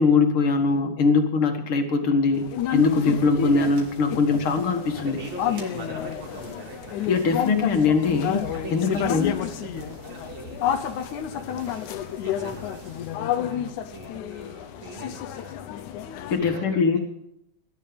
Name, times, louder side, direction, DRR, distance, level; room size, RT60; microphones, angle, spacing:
voice 1, 0.0-2.5 2.7-5.2 7.1-9.3 16.3-17.0, left 4 dB, 50° left, 5 dB, 2.4 m, -22 dB
sound 1, 2.3-16.4, left 10 dB, 80° left, 2.4 m, -30 dB
sound 2, 2.7-13.2, right 3 dB, 85° right, 4.5 m, -47 dB
voice 2, 4.9-7.1 8.5-15.6 16.4-17.0, right 4 dB, 65° right, -4 dB, 3.7 m, -41 dB
19.0 x 11.5 x 5.3 m, 0.82 s
omnidirectional pair, 3.4 m